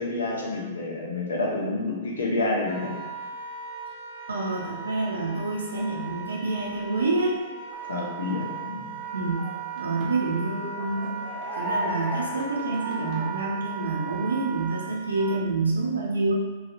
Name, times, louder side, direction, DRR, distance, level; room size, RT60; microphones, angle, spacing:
voice 1, 0.0-2.9 7.9-9.0, left 2 dB, 80° left, -2 dB, 0.7 m, -28 dB
Wind instrument woodwind instrument, 2.6-15.4, right 5 dB, 35° left, 1.0 m, -37 dB
voice 2, 4.3-7.4 9.1-9.5 9.7-11.1 11.6-16.3, right 3 dB, 85° right, -3 dB, 0.6 m, -27 dB
sound 1, 7.7-8.6 9.0-13.3, right 1 dB, 40° right, 0.8 m, -35 dB
2.9 x 2.3 x 2.6 m, 1.4 s
hypercardioid pair, 110°, 0 cm